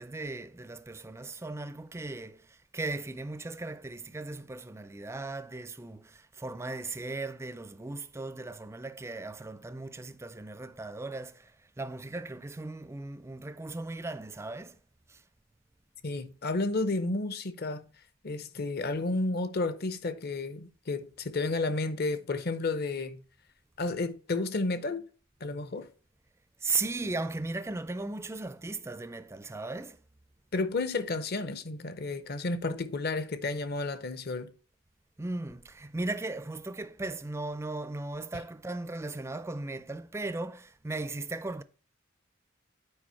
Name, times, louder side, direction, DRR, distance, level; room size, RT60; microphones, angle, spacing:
voice 1, 0.0-14.8 15.1-15.2 26.6-30.0 35.2-41.6, right 3 dB, 15° right, 0.4 m, -37 dB
voice 2, 16.0-17.9 18.2-23.2 23.8-25.0 25.4-25.9 30.5-34.5, left 3 dB, 50° left, 0.7 m, -32 dB
8.7 x 4.8 x 4.5 m
head